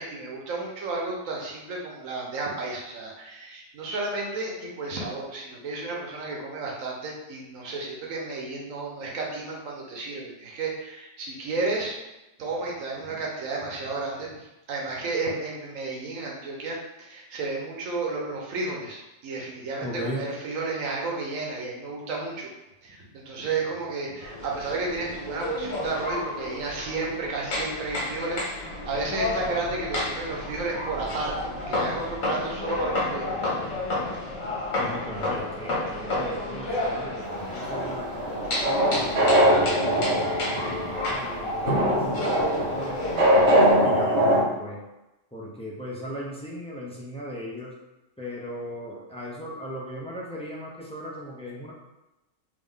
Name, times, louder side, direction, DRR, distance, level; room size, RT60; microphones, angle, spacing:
voice 1, 0.0-12.0 12.4-22.5 22.8-33.4, right 3 dB, 85° right, -2 dB, 1.2 m, -32 dB
voice 2, 19.8-20.2 34.8-43.0 43.7-44.8 45.3-47.7 48.2-51.7, equal, 10° left, -5 dB, 0.3 m, -38 dB
sound 1, 24.2-43.7, left 2 dB, 80° left, 1.5 m, -31 dB
sound 2, 37.2-44.4, equal, 60° right, 1.0 m, -23 dB
3.6 x 2.6 x 3.6 m, 0.98 s
omnidirectional pair, 1.3 m